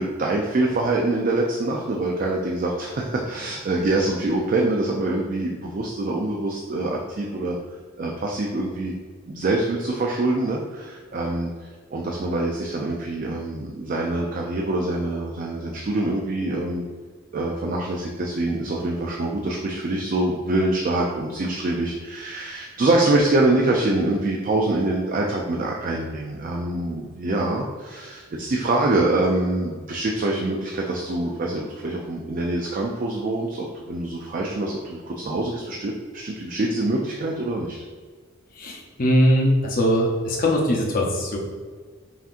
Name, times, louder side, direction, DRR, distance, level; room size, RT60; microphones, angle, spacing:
voice 1, 0.0-7.6 8.0-8.9 9.3-11.5 11.9-16.8 17.3-37.8, right 2 dB, 40° right, -1 dB, 0.4 m, -25 dB
voice 2, 38.6-41.4, equal, 45° left, -1 dB, 0.7 m, -21 dB
5.6 x 2.8 x 2.5 m, 1.6 s
head